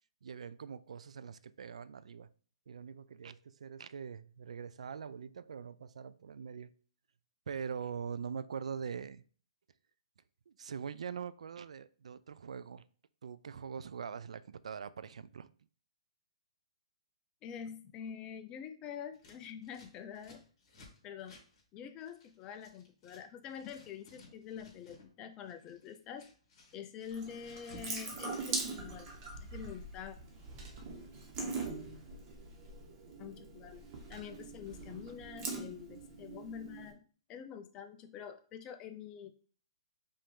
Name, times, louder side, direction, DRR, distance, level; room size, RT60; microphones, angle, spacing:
voice 1, 0.2-2.3 2.7-6.7 7.5-9.2 10.5-12.8 13.2-15.5, right 6 dB, 80° right, 16 dB, 0.3 m, -43 dB
voice 2, 17.4-20.4 21.0-21.4 21.7-26.3 26.7-29.1 29.4-30.2 33.2-33.8 34.1-37.0 37.3-39.3, left 8 dB, 20° left, 9 dB, 0.4 m, -46 dB
Scissors, 19.1-23.2 23.5-25.1 25.4-28.0 28.2-29.1, left 2 dB, 40° left, 2.1 m, -58 dB
Water tap faucet / Sink (filling or washing) / Drip, 27.1-36.9, right 3 dB, 30° right, 1.1 m, -42 dB
5.4 x 2.6 x 3.6 m, 0.43 s
hypercardioid pair, 150°, 3 cm